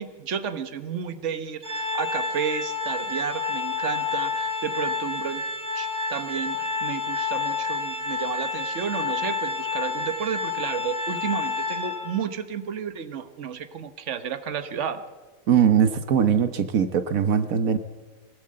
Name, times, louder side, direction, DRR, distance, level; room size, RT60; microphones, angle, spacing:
voice 1, 0.0-5.4 5.7-15.0, right 7 dB, 60° right, 9 dB, 1.4 m, -32 dB
Organ, 1.6-12.3, left 4 dB, 30° right, 1.7 m, -29 dB
voice 2, 15.5-17.8, right 8 dB, 80° right, 10 dB, 1.4 m, -21 dB
23.5 x 17.5 x 7.7 m, 1.4 s
omnidirectional pair, 1.4 m